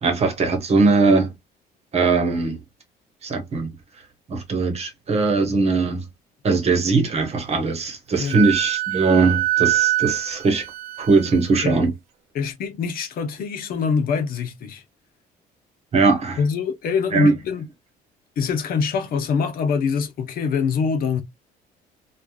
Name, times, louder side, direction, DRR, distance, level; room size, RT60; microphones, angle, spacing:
voice 1, 0.0-1.3 1.9-2.6 3.2-3.7 4.3-6.1 6.4-10.6 11.0-11.9 15.9-16.4 17.1-17.3, right 4 dB, 40° right, 1.1 m, -20 dB
Wind instrument woodwind instrument, 8.3-11.8, right 15 dB, 65° right, 0.4 m, -24 dB
voice 2, 12.3-14.8 16.4-17.6 18.4-21.2, left 5 dB, 60° left, 0.8 m, -24 dB
3.2 x 2.4 x 2.2 m
cardioid pair, 110°, 17 cm